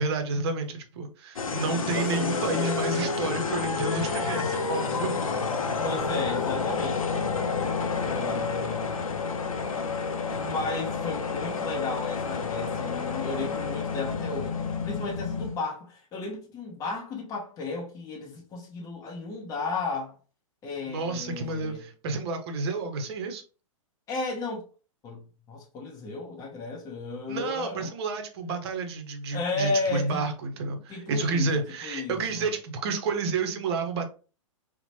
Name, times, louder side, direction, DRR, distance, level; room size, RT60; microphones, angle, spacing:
voice 1, 0.0-5.1 20.9-23.4 27.3-34.1, right 3 dB, 50° right, 0.7 m, -30 dB
sound 1, 1.4-15.6, left 5 dB, 80° left, 0.5 m, -29 dB
voice 2, 1.7-3.3 5.8-7.4 8.0-9.0 10.3-14.6 14.8-20.1 20.6-21.8 24.1-24.6 25.0-27.9 29.3-30.2 30.9-31.5 31.8-32.5, left 3 dB, 20° left, 0.7 m, -34 dB
2.9 x 2.1 x 2.8 m
figure-of-eight pair, 110°, 17 cm